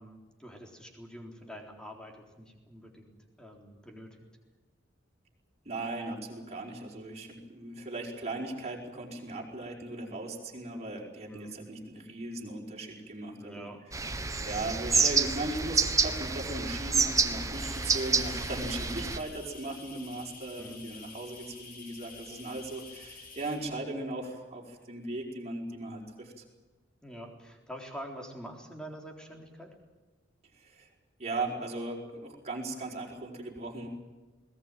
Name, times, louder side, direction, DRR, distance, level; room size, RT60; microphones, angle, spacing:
voice 1, 0.0-4.2 7.1-7.4 11.3-11.7 13.4-13.8 20.6-20.8 27.0-29.7, equal, 5° left, 2 dB, 3.9 m, -46 dB
voice 2, 5.6-13.7 14.4-26.4 30.5-30.9 31.2-33.9, right 2 dB, 35° right, -2 dB, 5.2 m, -38 dB
sound 1, 13.9-19.2, right 4 dB, 15° right, 1.4 m, -28 dB
sound 2, 17.5-23.6, left 4 dB, 50° left, 5.1 m, -49 dB
21.0 x 19.0 x 9.3 m, 1.2 s
head